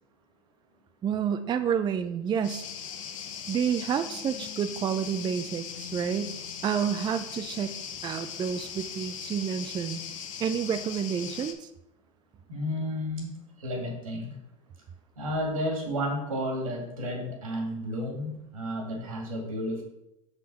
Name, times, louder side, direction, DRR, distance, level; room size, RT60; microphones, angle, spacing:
voice 1, 1.0-2.6 3.5-6.4 6.6-7.8 8.0-10.0 10.4-11.7, right 8 dB, 25° right, 9 dB, 0.4 m, -29 dB
sound 1, 2.4-11.5, left 8 dB, 70° left, 0.9 m, -39 dB
voice 2, 12.5-13.3 13.6-14.4 15.2-19.8, equal, 85° right, 0 dB, 2.3 m, -32 dB
6.0 x 5.5 x 4.2 m, 0.84 s
hypercardioid pair, 85°, 17 cm